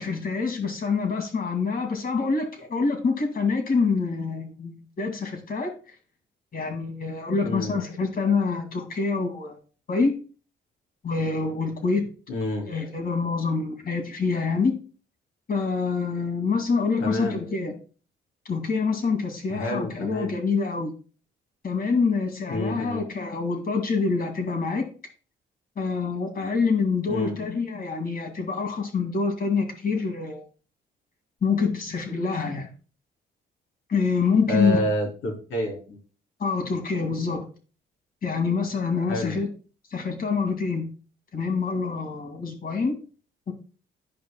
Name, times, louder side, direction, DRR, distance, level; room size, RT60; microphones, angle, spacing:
voice 1, 0.0-5.7 6.5-9.6 9.9-10.1 11.0-12.1 12.7-14.7 15.5-17.7 18.4-20.9 21.6-24.9 25.8-30.4 31.4-32.7 33.9-34.8 36.4-37.4 38.2-39.5 39.9-40.9 41.3-43.0 43.5-43.6, left 4 dB, 50° left, 2.3 m, -26 dB
voice 2, 7.4-7.8 12.3-12.7 17.0-17.4 19.5-20.3 22.5-23.0 27.1-27.4 34.5-36.0 39.1-39.4, equal, 85° left, 3.6 m, -28 dB
11.0 x 5.2 x 2.3 m
cardioid pair, 90°, 20 cm